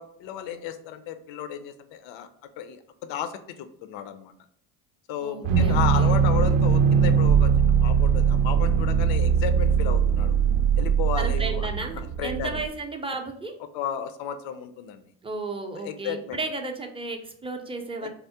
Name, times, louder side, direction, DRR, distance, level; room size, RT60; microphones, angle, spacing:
voice 1, 0.0-2.3 2.6-4.3 5.1-10.4 10.8-11.7 12.0-12.6 13.7-15.0 15.8-16.4 18.0-18.1, left 9 dB, 65° left, 10 dB, 0.5 m, -33 dB
voice 2, 5.2-6.1 11.1-13.5 15.2-18.1, right 3 dB, 10° right, 3 dB, 0.5 m, -34 dB
sound 1, 5.4-12.6, right 7 dB, 60° right, 0.5 m, -21 dB
3.5 x 2.0 x 2.7 m, 0.68 s
hypercardioid pair, 50°, 50 cm